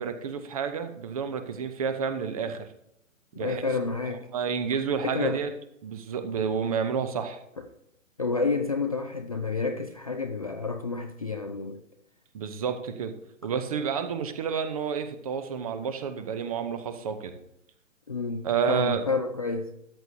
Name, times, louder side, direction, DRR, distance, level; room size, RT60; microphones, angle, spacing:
voice 1, 0.0-2.7 3.4-3.6 4.1-5.5 5.8-7.4 12.3-13.1 13.4-17.3 18.4-19.0, right 6 dB, 25° right, 0.7 m, -30 dB
voice 2, 3.3-4.3 5.1-5.4 7.6-7.7 8.2-11.8 18.1-19.7, left 4 dB, 30° left, 0.4 m, -30 dB
13.0 x 8.1 x 2.7 m
figure-of-eight pair, 130°, 41 cm